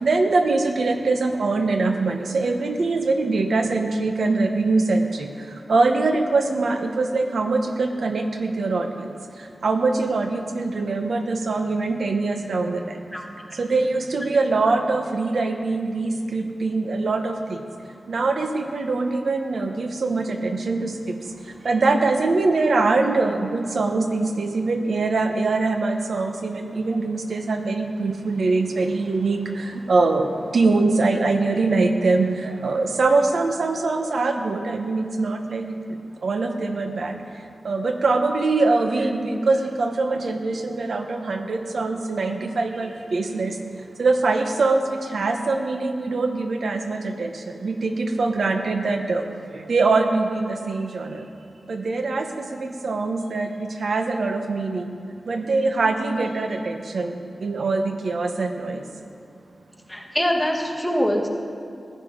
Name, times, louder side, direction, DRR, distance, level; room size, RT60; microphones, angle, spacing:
voice 1, 0.0-5.3 5.7-8.9 9.6-12.8 13.6-17.3 18.1-20.9 21.6-29.4 29.9-30.3 30.5-35.7 36.2-37.2 37.6-43.5 44.0-47.3 47.6-49.2 49.7-51.2 51.7-54.9 55.3-57.1 57.4-58.8, right 3 dB, 70° right, 5 dB, 1.0 m, -23 dB
voice 2, 59.9-61.3, equal, ahead, 0 dB, 1.4 m, -23 dB
16.0 x 9.9 x 5.2 m, 2.4 s
wide cardioid pair, 140°, 0 cm